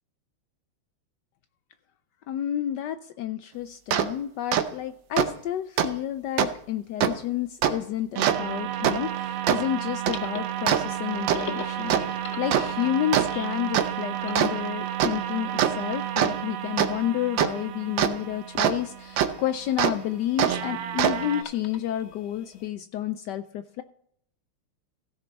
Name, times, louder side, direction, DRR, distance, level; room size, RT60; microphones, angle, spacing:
voice 1, 2.3-23.8, left 12 dB, 85° left, 11 dB, 0.9 m, -30 dB
sound 1, 3.9-4.1 4.5-4.6 5.2-5.3 5.8-5.9 6.4-6.5 7.0-7.1 7.6-7.7 8.2-18.7 19.2-19.3 19.8-19.9 20.4-21.4, right 9 dB, 70° right, 1.4 m, -26 dB
sound 2, 9.1-22.7, left 5 dB, 55° left, 0.7 m, -45 dB
16.0 x 6.7 x 4.0 m, 0.67 s
omnidirectional pair, 2.4 m